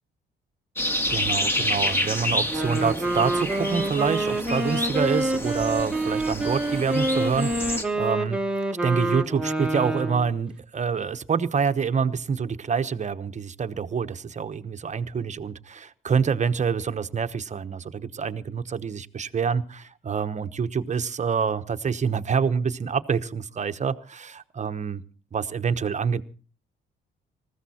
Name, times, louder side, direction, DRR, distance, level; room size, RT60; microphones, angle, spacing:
sound 1, 0.8-7.8, left 1 dB, 10° left, 2.3 m, -29 dB
voice 1, 1.1-8.4 8.8-25.0 25.3-26.2, right 6 dB, 35° right, 10 dB, 1.0 m, -27 dB
Wind instrument woodwind instrument, 2.4-10.3, right 1 dB, 5° right, 1.5 m, -27 dB
20.0 x 15.0 x 4.3 m, 0.37 s
cardioid pair, 90°, 20 cm